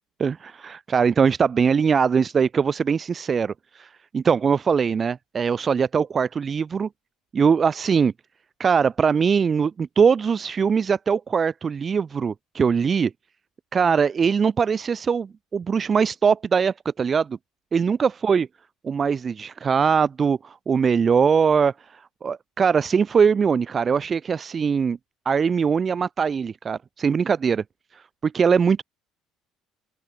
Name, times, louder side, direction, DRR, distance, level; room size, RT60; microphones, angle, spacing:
voice 1, 0.2-6.9 7.3-8.1 8.6-13.1 13.7-17.4 17.7-18.5 18.8-25.0 25.2-27.6 27.9-28.8, right 6 dB, 35° right, 1.2 m, -21 dB
open air
hypercardioid pair, 65°, 0 cm